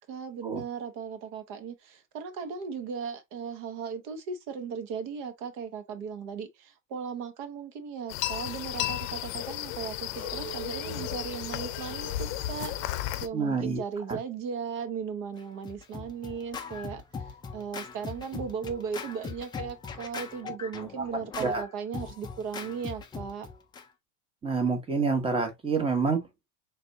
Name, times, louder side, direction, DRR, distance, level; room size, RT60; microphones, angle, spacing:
voice 1, 0.1-17.0 17.5-23.5, right 6 dB, 50° right, 1.1 m, -37 dB
sound 1, 8.1-13.3, left 14 dB, 80° left, 0.6 m, -34 dB
Chink clink, 10.2-15.6, right 7 dB, 80° right, 2.1 m, -46 dB
voice 2, 13.3-13.8 14.1-14.2 21.4-21.6 24.4-26.2, right 4 dB, 15° right, 1.0 m, -27 dB
Scratching (performance technique), 15.4-23.8, left 5 dB, 10° left, 0.3 m, -40 dB
4.1 x 3.4 x 2.6 m
supercardioid pair, 130°, 40 cm